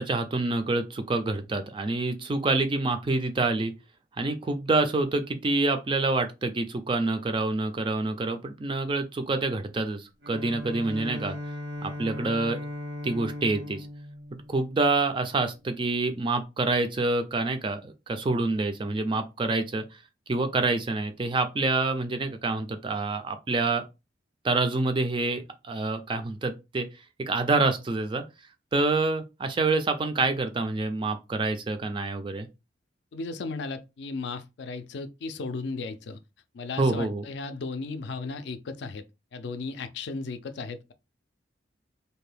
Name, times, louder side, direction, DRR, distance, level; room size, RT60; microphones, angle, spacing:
voice 1, 0.0-3.7 4.2-11.3 11.8-12.6 13.0-13.9 14.5-19.8 20.3-23.8 24.4-26.9 27.3-28.2 28.7-32.5 36.8-37.2, right 3 dB, 25° right, 0.3 m, -27 dB
Bowed string instrument, 10.2-15.3, left 1 dB, 75° right, 0.8 m, -38 dB
voice 2, 33.1-36.2 36.5-39.0 39.3-40.9, left 3 dB, 65° left, 0.4 m, -35 dB
2.6 x 2.2 x 3.2 m
head